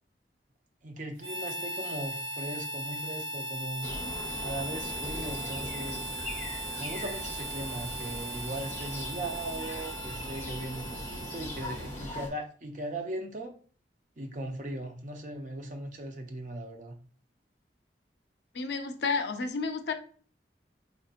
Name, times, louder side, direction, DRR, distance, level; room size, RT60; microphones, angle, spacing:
voice 1, 0.8-3.9 4.4-6.1 6.8-13.6 14.2-17.0, right 1 dB, 45° right, 0.5 m, -38 dB
Harmonica, 1.2-12.3, right 1 dB, 80° right, 1.0 m, -38 dB
sound 1, 3.8-12.3, left 1 dB, 15° left, 0.6 m, -40 dB
voice 2, 18.5-19.9, left 4 dB, 70° left, 0.5 m, -31 dB
4.4 x 2.7 x 2.4 m
head